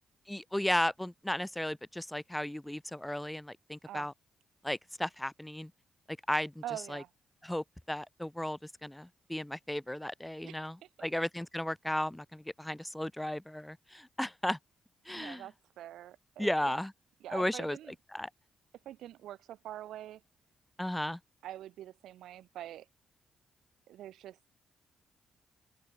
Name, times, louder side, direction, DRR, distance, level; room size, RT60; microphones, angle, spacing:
voice 1, 0.3-4.1 4.6-5.7 6.3-6.5 6.9-7.0 7.4-14.6 15.1-15.4 16.4-16.9 17.3-17.8 18.1-18.3 20.8-21.2, left 1 dB, 10° left, 5.7 m, -35 dB
voice 2, 6.6-7.1 10.4-10.7 11.0-11.1 15.1-16.7 17.2-17.9 18.9-20.2 21.4-22.9 23.9-24.4, right 12 dB, 80° right, 7.3 m, -45 dB
open air
supercardioid pair, 55°, 0 cm